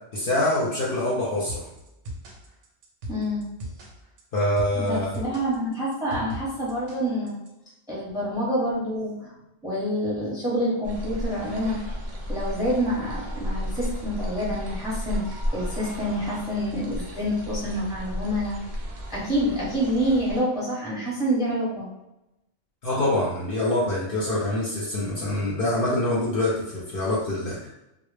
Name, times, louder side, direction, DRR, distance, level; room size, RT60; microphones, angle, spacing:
voice 1, 0.1-1.7 4.3-5.3 22.8-27.7, left 1 dB, 60° left, -6 dB, 0.7 m, -25 dB
sound 1, 1.5-7.5, equal, 90° right, 0.9 m, -39 dB
voice 2, 3.1-3.4 4.7-7.4 7.9-9.3 9.6-11.8 12.3-18.6 19.1-21.9, equal, 5° right, -7 dB, 0.6 m, -27 dB
sound 2, 10.8-20.4, equal, 60° right, 0.3 m, -33 dB
2.0 x 2.0 x 3.1 m, 0.91 s
omnidirectional pair, 1.2 m